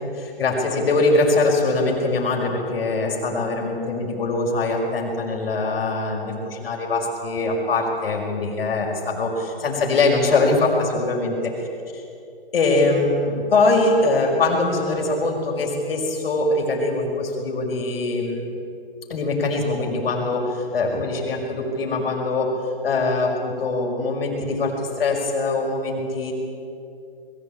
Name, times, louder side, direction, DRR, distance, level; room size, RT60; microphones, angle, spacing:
voice 1, 0.2-11.5 12.5-18.4 19.1-22.5 22.8-26.3, left 2 dB, 70° left, 0 dB, 5.5 m, -22 dB
21.5 x 16.0 x 8.8 m, 2.6 s
hypercardioid pair, 135°, 30 cm